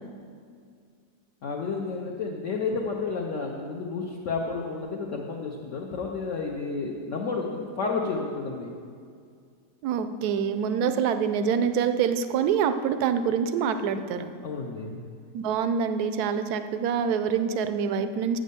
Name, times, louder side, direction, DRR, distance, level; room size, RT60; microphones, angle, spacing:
voice 1, 1.4-8.7 14.4-15.0, left 4 dB, 60° left, -1 dB, 0.9 m, -31 dB
voice 2, 9.8-14.3 15.3-18.4, right 7 dB, 75° right, 10 dB, 1.0 m, -26 dB
7.3 x 6.4 x 6.8 m, 2.2 s
omnidirectional pair, 1.8 m